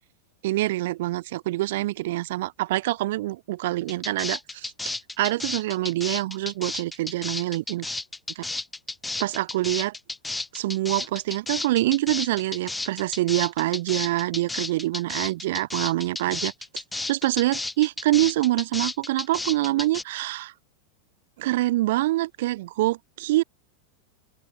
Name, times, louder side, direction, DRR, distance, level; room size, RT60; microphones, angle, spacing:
voice 1, 0.4-4.7 5.2-7.9 8.3-8.4 9.2-9.9 10.5-16.5 17.1-20.5 21.4-23.4, right 17 dB, 55° right, 1.2 m, -25 dB
sound 1, 3.9-20.0, left 2 dB, 5° left, 2.1 m, -32 dB
open air
figure-of-eight pair, 90°, 0 cm